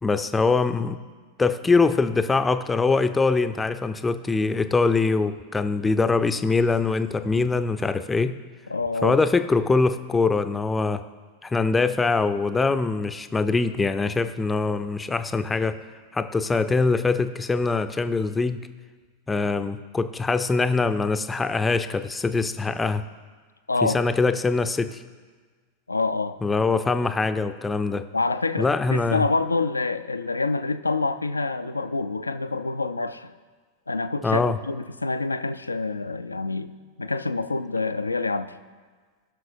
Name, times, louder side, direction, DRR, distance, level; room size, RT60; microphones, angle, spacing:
voice 1, 0.0-1.0 1.4-8.4 9.0-11.0 11.4-15.8 16.1-18.6 19.3-23.0 23.8-25.0 26.4-28.1 28.6-29.2 34.2-34.6, left 4 dB, 10° left, 10 dB, 0.4 m, -23 dB
voice 2, 8.7-9.2 23.7-24.0 25.9-26.4 28.1-33.3 33.9-36.7 37.0-38.5, left 3 dB, 80° left, 12 dB, 0.4 m, -27 dB
18.0 x 6.1 x 2.5 m, 1.5 s
figure-of-eight pair, 90°, 0 cm